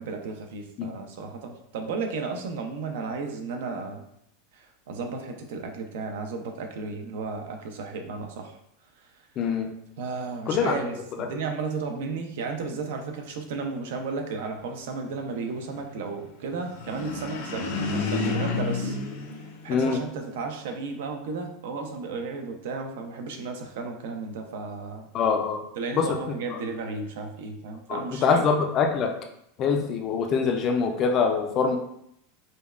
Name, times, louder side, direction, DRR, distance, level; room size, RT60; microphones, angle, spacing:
voice 1, 0.0-4.0 4.5-8.6 10.0-19.0 19.6-25.1 25.8-28.5, right 4 dB, 75° right, 4 dB, 0.6 m, -34 dB
voice 2, 9.4-9.7 10.5-10.7 19.7-20.0 25.1-25.6 25.9-26.1 26.5-26.6 27.9-29.1 29.6-31.8, left 5 dB, 30° left, 4 dB, 0.4 m, -24 dB
sound 1, 16.6-20.2, left 3 dB, 80° left, 0.8 m, -30 dB
5.2 x 2.2 x 2.4 m, 0.76 s
supercardioid pair, 160°, 0 cm